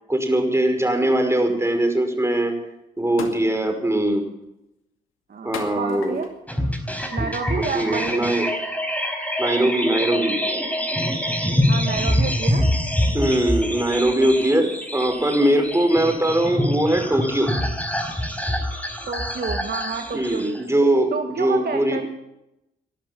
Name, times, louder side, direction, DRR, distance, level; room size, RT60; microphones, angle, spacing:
voice 1, 0.1-2.5 3.0-4.3 5.4-6.2 7.2-7.3 7.6-8.5 9.4-10.4 13.1-17.5 20.1-21.1 21.4-22.0, right 1 dB, 15° right, 4 dB, 5.3 m, -21 dB
sound 1, 2.3-2.4 3.2-3.6 4.1-4.5 5.5-6.4 7.2-7.4, left 7 dB, 75° left, 2.3 m, -35 dB
voice 2, 5.3-6.3 7.1-8.3 11.7-12.7 19.1-20.6 21.1-22.0, right 5 dB, 50° right, 4 dB, 1.8 m, -29 dB
sound 2, 6.5-20.6, equal, 5° left, 4.4 m, -25 dB
20.0 x 12.0 x 5.9 m, 0.86 s
hypercardioid pair, 45°, 21 cm